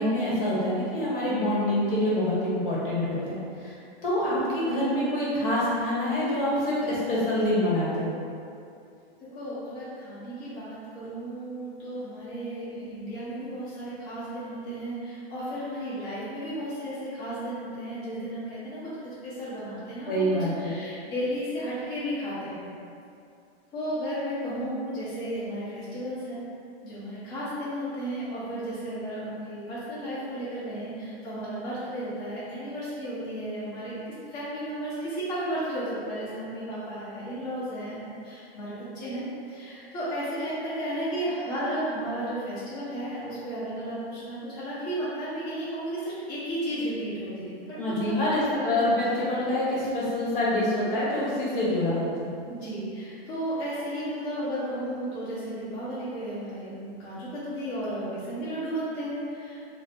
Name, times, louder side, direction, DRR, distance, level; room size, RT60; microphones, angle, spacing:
voice 1, 0.0-8.1 20.1-20.7 47.8-52.3, left 1 dB, 55° left, -7 dB, 1.0 m, -26 dB
voice 2, 9.2-22.7 23.7-26.4 26.8-47.5 47.9-48.2 48.5-49.1 52.5-59.6, right 1 dB, 30° left, -12 dB, 0.8 m, -34 dB
3.7 x 2.0 x 2.8 m, 2.5 s
supercardioid pair, 170°, 32 cm